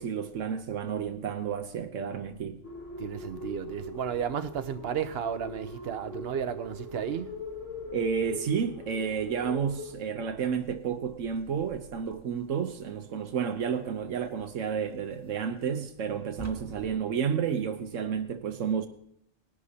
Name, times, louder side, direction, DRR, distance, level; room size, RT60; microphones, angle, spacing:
voice 1, 0.0-2.6 7.9-18.9, right 7 dB, 80° right, 1.2 m, -31 dB
sound 1, 2.6-10.0, left 2 dB, 70° left, 1.8 m, -41 dB
voice 2, 3.0-7.3, right 8 dB, 55° right, 0.9 m, -33 dB
sound 2, 10.6-17.0, right 2 dB, 15° right, 1.9 m, -52 dB
20.0 x 11.5 x 2.8 m
omnidirectional pair, 1.3 m